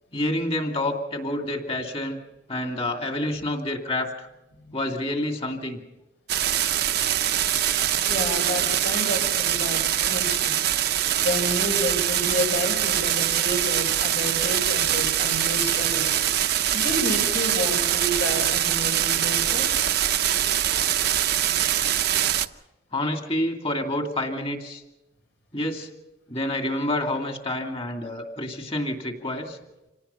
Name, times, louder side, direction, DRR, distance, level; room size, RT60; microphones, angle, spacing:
voice 1, 0.1-2.2 2.5-4.3 4.7-5.8 22.9-24.8 25.5-25.9 26.3-29.6, left 1 dB, 30° left, 3 dB, 2.5 m, -28 dB
sound 1, 6.3-22.5, right 11 dB, 60° right, 0.7 m, -23 dB
voice 2, 8.1-10.6 11.2-16.2 16.7-19.7, left 1 dB, 75° left, 3 dB, 5.3 m, -30 dB
27.0 x 18.5 x 5.7 m, 0.97 s
head